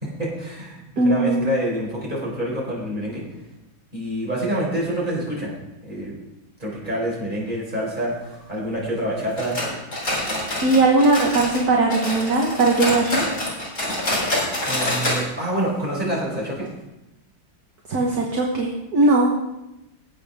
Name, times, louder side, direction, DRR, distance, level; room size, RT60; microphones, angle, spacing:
voice 1, 0.0-3.2 3.9-5.5 5.8-6.2 6.6-9.6 10.7-10.8 14.7-16.7, right 1 dB, 20° right, -4 dB, 4.5 m, -27 dB
voice 2, 1.0-1.5 10.6-13.3 17.9-19.3, right 2 dB, 50° right, -1 dB, 1.8 m, -19 dB
sound 1, 9.4-11.6 11.9-15.2 15.5-15.6 16.0-16.1 16.7-16.8, left 1 dB, 45° left, 4.5 m, -26 dB
19.5 x 8.1 x 3.6 m, 0.94 s
omnidirectional pair, 2.2 m